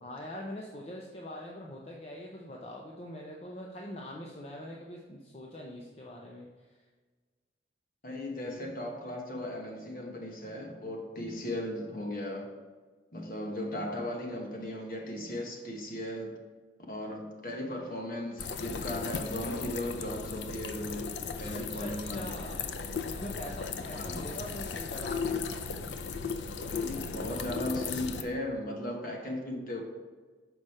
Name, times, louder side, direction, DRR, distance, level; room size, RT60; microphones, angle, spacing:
voice 1, 0.0-6.7 21.4-22.6 23.1-25.4, left 1 dB, 35° left, -1 dB, 0.6 m, -43 dB
voice 2, 8.0-12.5 13.1-16.4 16.9-21.1 21.4-22.4 23.9-24.2 26.7-29.8, left 1 dB, 50° left, 1 dB, 1.1 m, -37 dB
sound 1, 18.4-28.2, left 5 dB, 85° left, 0.5 m, -36 dB
6.4 x 5.0 x 4.2 m, 1.4 s
head